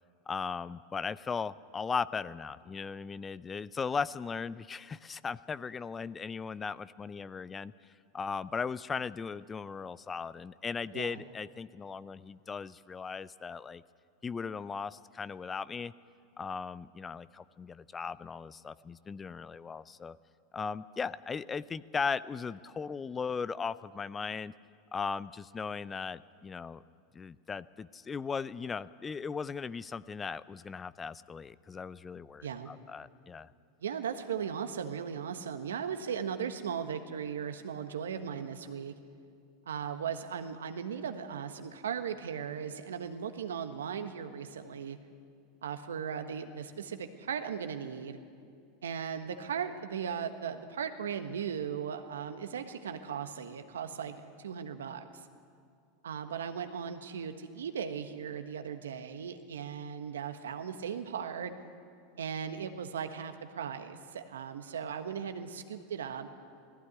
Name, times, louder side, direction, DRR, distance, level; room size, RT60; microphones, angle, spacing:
voice 1, 0.3-7.7 8.1-13.8 14.2-15.9 16.4-20.2 20.5-24.5 24.9-26.8 27.1-33.5, left 5 dB, 25° left, 18 dB, 0.5 m, -37 dB
voice 2, 33.8-38.9 39.6-45.0 45.6-48.2 48.8-55.1 56.0-61.5 62.2-66.3, right 7 dB, 85° right, 8 dB, 1.3 m, -37 dB
18.5 x 15.0 x 9.6 m, 2.3 s
hypercardioid pair, 95°, 0 cm